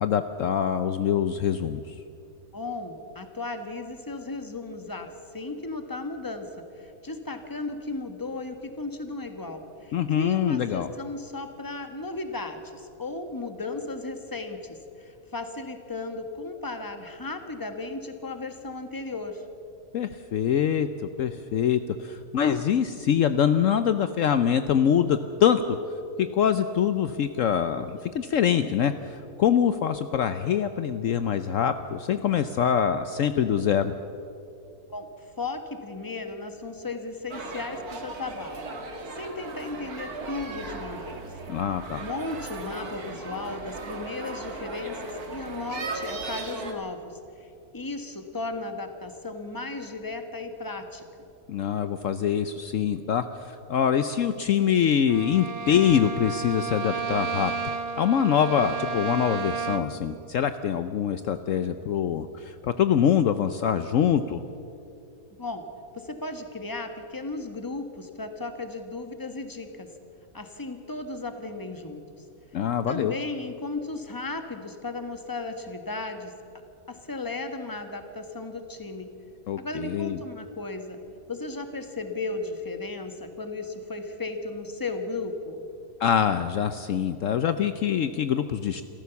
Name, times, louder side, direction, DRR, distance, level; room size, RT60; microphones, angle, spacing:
voice 1, 0.0-1.9 9.9-10.9 19.9-25.8 26.2-33.9 41.5-42.0 51.5-57.5 58.0-64.4 72.5-73.1 79.5-80.2 86.0-88.8, left 8 dB, 65° left, 10 dB, 1.0 m, -24 dB
voice 2, 2.5-19.4 34.9-41.3 42.0-51.0 65.4-65.7 65.9-69.9 70.3-72.2 72.9-76.3 76.9-79.1 79.6-81.0 81.3-85.6, left 3 dB, 15° left, 7 dB, 1.4 m, -35 dB
sound 1, 37.3-46.7, right 3 dB, 85° right, 2.4 m, -37 dB
Bowed string instrument, 55.1-60.1, right 5 dB, 30° right, 0.8 m, -32 dB
28.0 x 14.0 x 7.1 m, 2.7 s
omnidirectional pair, 1.5 m